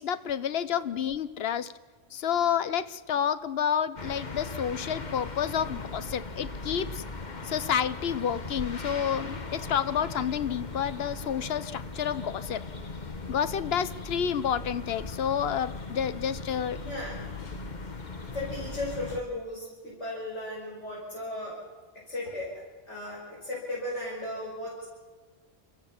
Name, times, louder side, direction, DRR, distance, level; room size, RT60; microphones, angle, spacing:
voice 1, 0.0-1.7 2.1-7.0 7.4-12.6 13.3-16.9, left 8 dB, 60° left, 14 dB, 1.0 m, -29 dB
sound 1, 4.0-19.2, left 3 dB, 40° left, 1.5 m, -39 dB
voice 2, 16.8-17.2 18.2-21.6 21.9-24.8, left 1 dB, 80° left, -6 dB, 6.0 m, -36 dB
30.0 x 14.5 x 7.2 m, 1.4 s
omnidirectional pair, 1.2 m